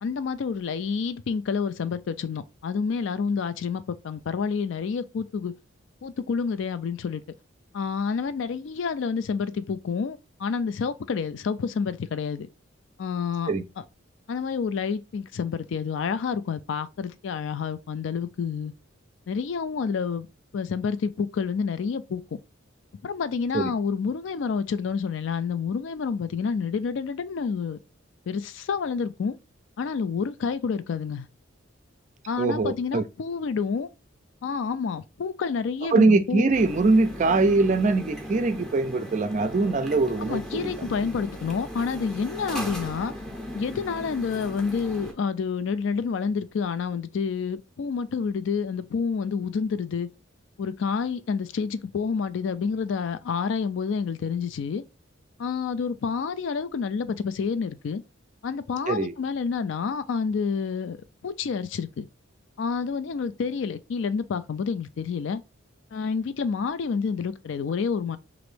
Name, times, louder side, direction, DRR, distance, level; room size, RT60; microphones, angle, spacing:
voice 1, 0.0-5.5 6.0-7.2 7.7-12.5 13.0-13.8 14.3-18.7 19.3-20.3 20.5-22.2 23.0-27.8 28.3-29.4 29.8-31.3 32.3-33.9 34.4-36.5 40.2-43.1 43.5-50.1 50.6-54.8 55.4-58.0 58.4-61.0 61.2-62.1 62.6-65.4 65.9-68.2, left 5 dB, 65° left, 0.3 m, -29 dB
voice 2, 32.4-33.0 35.9-40.9 58.9-59.1, right 3 dB, 35° right, 0.4 m, -22 dB
sound 1, 36.5-45.1, equal, ahead, 0.6 m, -38 dB
3.0 x 2.5 x 3.2 m
head